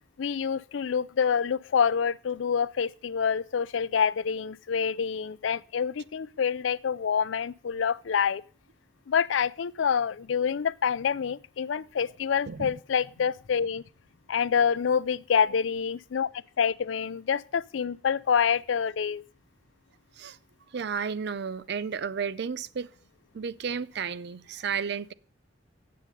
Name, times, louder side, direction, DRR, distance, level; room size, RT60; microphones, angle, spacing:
voice 1, 0.2-8.4 9.1-13.8 14.3-16.3 16.6-19.2, left 7 dB, 85° left, 0.4 m, -27 dB
voice 2, 20.7-22.9 23.3-25.1, right 6 dB, 60° right, 0.5 m, -32 dB
8.3 x 7.5 x 5.3 m
head